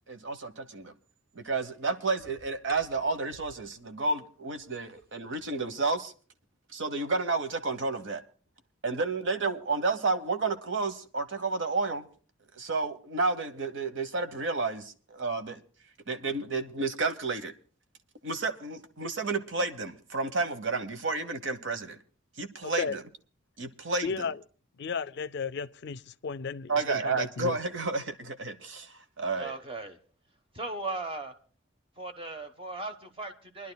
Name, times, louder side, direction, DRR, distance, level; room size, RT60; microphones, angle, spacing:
voice 1, 0.1-0.9 1.3-6.1 6.7-8.2 8.8-12.1 12.6-15.6 16.1-17.5 18.2-22.0 22.4-23.0 23.6-24.1 26.7-29.6, right 3 dB, 70° right, 1.1 m, -31 dB
sound 1, 1.4-3.9 4.5-5.7, right 1 dB, 50° right, 3.5 m, -56 dB
voice 2, 22.6-23.0 24.0-24.4 24.8-27.6, left 5 dB, 60° left, 0.5 m, -34 dB
voice 3, 29.4-30.0 30.5-31.3 32.0-33.7, right 2 dB, 30° right, 1.1 m, -37 dB
28.0 x 11.0 x 2.3 m
head